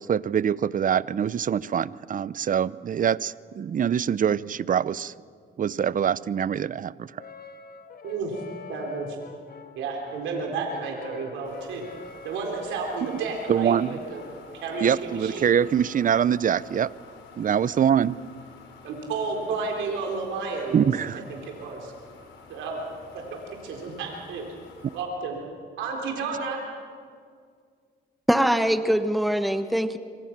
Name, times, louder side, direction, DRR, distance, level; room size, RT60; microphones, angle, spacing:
voice 1, 0.0-5.1 5.6-7.1 13.1-13.2 13.5-13.9 14.8-16.9 17.4-18.2 20.7-21.2, right 8 dB, 45° right, 19 dB, 0.7 m, -24 dB
Brass instrument, 7.2-15.8, left 5 dB, 50° left, 1.9 m, -45 dB
voice 2, 8.0-8.4 8.7-9.2 9.8-11.8 12.2-14.2 14.5-15.5 16.4-16.6 18.8-20.9 21.3-21.9 22.5-22.8 23.1-23.4 23.6-24.4 24.9-25.4 25.8-26.6, right 4 dB, 90° right, 1 dB, 4.0 m, -32 dB
sound 1, 11.4-25.0, left 4 dB, 80° left, 4.7 m, -49 dB
voice 3, 28.3-30.0, equal, ahead, 10 dB, 1.2 m, -22 dB
26.0 x 25.5 x 6.0 m, 2.1 s
cardioid pair, 75°, 19 cm